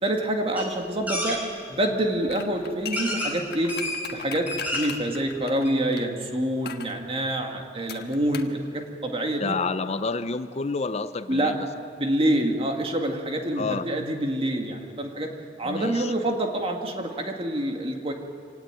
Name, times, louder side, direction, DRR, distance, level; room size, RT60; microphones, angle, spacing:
voice 1, 0.0-1.4 1.7-3.7 4.1-9.6 11.3-15.3 15.6-18.1, right 1 dB, 35° right, 3 dB, 2.2 m, -27 dB
sound 1, 0.5-0.7 1.1-1.4 2.3-2.4 2.9-3.3 3.7-4.0 4.3-5.0 5.4-5.5 5.6-5.7, left 1 dB, 10° right, 4.6 m, -29 dB
sound 2, 2.3-6.1 6.7-7.0 7.9-8.6 8.8-8.9, left 7 dB, 60° left, 1.4 m, -38 dB
voice 2, 9.4-11.6 13.6-13.9 15.6-16.1, left 4 dB, 35° left, 12 dB, 0.5 m, -29 dB
25.5 x 18.5 x 9.0 m, 2.4 s
head